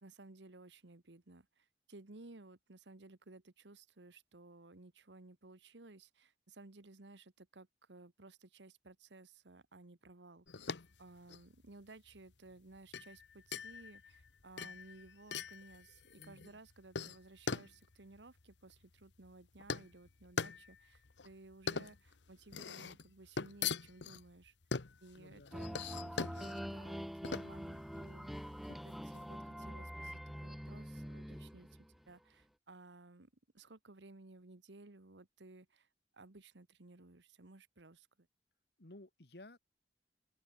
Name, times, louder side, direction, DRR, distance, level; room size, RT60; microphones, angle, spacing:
voice 1, 0.0-10.7 11.0-24.5 25.0-28.3 28.8-31.8 32.1-35.9 36.1-38.3, right 2 dB, 90° right, 1.4 m, -57 dB
sound 1, 10.5-29.3, left 5 dB, 85° left, 1.1 m, -43 dB
voice 2, 16.2-16.5 25.2-25.5 38.8-39.6, left 1 dB, 65° left, 2.0 m, -55 dB
sound 2, 25.5-32.1, equal, ahead, 0.4 m, -45 dB
open air
head